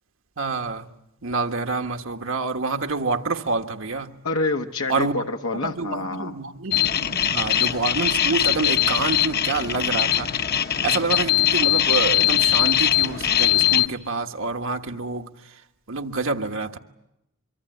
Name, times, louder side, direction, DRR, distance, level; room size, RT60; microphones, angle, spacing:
voice 1, 0.4-0.9 1.2-4.1 4.9-5.1 5.6-10.3 10.8-15.3 15.9-16.8, right 3 dB, 75° right, 5 dB, 1.5 m, -27 dB
voice 2, 4.2-6.3, left 3 dB, 90° left, 3 dB, 1.1 m, -27 dB
sound 1, 6.7-13.9, left 11 dB, 50° left, 1.0 m, -21 dB
24.5 x 24.0 x 9.2 m, 0.89 s
head